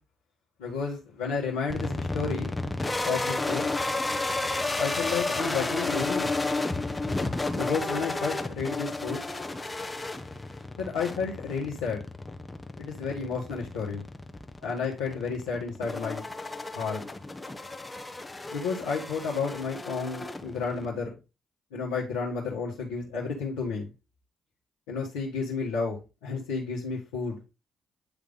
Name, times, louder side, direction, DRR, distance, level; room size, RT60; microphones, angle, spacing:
voice 1, 0.6-2.5 3.0-3.7 4.8-6.3 7.5-9.2 10.8-12.0 12.8-14.0 14.6-16.2 16.7-17.0 18.5-21.1 21.7-23.9 24.9-27.4, left 5 dB, 85° left, -7 dB, 1.9 m, -31 dB
sound 1, 1.7-20.9, left 2 dB, 20° left, 1.2 m, -32 dB
9.8 x 3.4 x 4.0 m, 0.28 s
hypercardioid pair, 45°, 0 cm